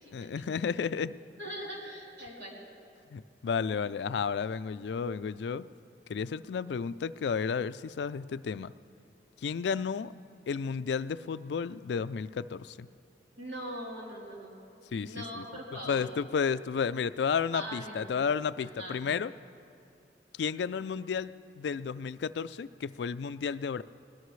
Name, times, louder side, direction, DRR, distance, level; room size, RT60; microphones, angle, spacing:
voice 1, 0.1-1.2 3.1-5.7 6.1-8.7 9.4-10.1 10.5-12.9 14.9-15.4 15.9-19.3 20.4-23.8, left 6 dB, 75° left, 15 dB, 0.3 m, -32 dB
voice 2, 1.4-2.6 13.4-14.6 15.0-16.1 17.5-18.2 18.6-19.0, equal, 80° right, -4 dB, 3.4 m, -41 dB
20.0 x 19.5 x 3.2 m, 2.5 s
head